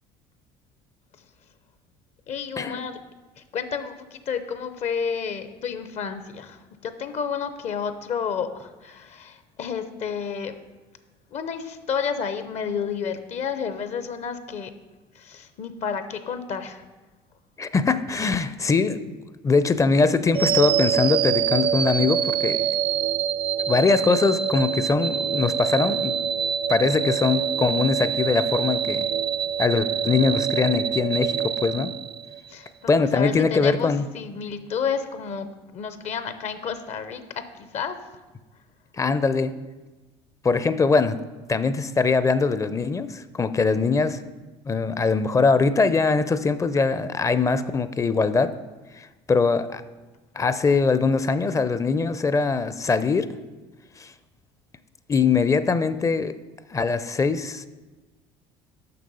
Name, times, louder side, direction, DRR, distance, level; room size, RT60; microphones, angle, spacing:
voice 1, 2.3-3.0 3.5-6.6 6.8-10.5 11.3-14.7 15.2-16.8 32.5-38.0, left 6 dB, 55° left, 10 dB, 0.7 m, -31 dB
voice 2, 17.6-19.1 19.4-22.6 23.7-26.1 26.7-29.1 29.6-31.9 32.9-34.1 39.0-39.5 40.4-41.2 41.5-44.2 44.7-48.5 49.0-49.8 50.4-53.3 54.0-54.1 55.1-56.3 56.7-57.7, left 4 dB, 25° left, 13 dB, 0.5 m, -22 dB
sound 1, 20.3-32.5, right 8 dB, 40° right, 0.4 m, -25 dB
6.7 x 6.0 x 5.4 m, 1.2 s
supercardioid pair, 80°, 14 cm